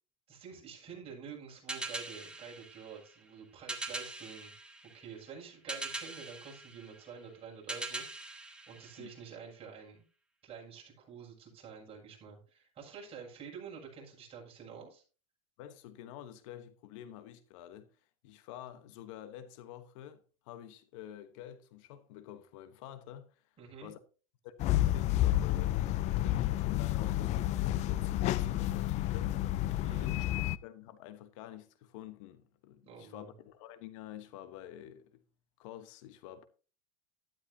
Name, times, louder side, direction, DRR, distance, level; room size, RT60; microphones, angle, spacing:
voice 1, 0.3-4.5 4.9-8.4 8.7-10.0 10.4-15.0 23.6-23.9 29.8-30.2 32.8-33.3, right 6 dB, 35° right, 7.2 m, -48 dB
sound 1, 1.7-9.6, right 2 dB, 5° right, 2.1 m, -43 dB
voice 2, 15.6-17.9 18.2-23.3 23.8-24.0 24.4-29.4 30.0-35.2 35.6-36.5, left 11 dB, 65° left, 1.3 m, -48 dB
sound 2, 24.6-30.6, left 14 dB, 40° left, 0.5 m, -30 dB
12.5 x 12.0 x 2.9 m
hypercardioid pair, 105°, 17 cm